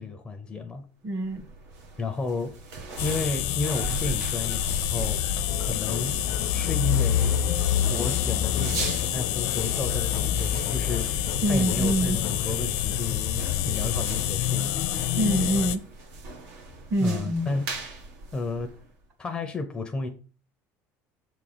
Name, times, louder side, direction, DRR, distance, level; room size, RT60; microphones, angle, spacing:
voice 1, 0.0-0.9 2.0-2.6 3.0-5.2 5.6-6.2 6.5-7.6 7.9-14.8 17.0-18.0 18.3-18.7 19.2-20.1, left 3 dB, 15° left, 0.7 m, -32 dB
voice 2, 1.0-1.4 11.4-12.2 15.2-15.8 16.9-17.4, right 1 dB, 35° right, 1.9 m, -25 dB
sound 1, 1.2-19.0, right 2 dB, 65° right, 1.5 m, -39 dB
sound 2, 3.0-15.8, left 11 dB, 90° left, 1.0 m, -27 dB
sound 3, 5.5-14.3, left 11 dB, 55° left, 0.6 m, -39 dB
7.4 x 3.7 x 6.1 m
cardioid pair, 170°, 6 cm